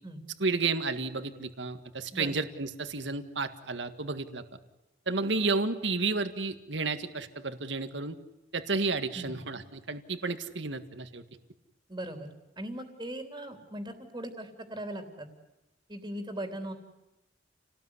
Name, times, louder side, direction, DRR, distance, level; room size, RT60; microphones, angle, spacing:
voice 1, 0.4-4.4 5.1-8.2 8.5-11.2, right 3 dB, 70° right, 9 dB, 1.8 m, -31 dB
voice 2, 11.9-12.3 12.6-15.3 15.9-16.7, right 1 dB, 20° right, 5 dB, 3.3 m, -39 dB
29.5 x 19.0 x 9.8 m, 0.98 s
head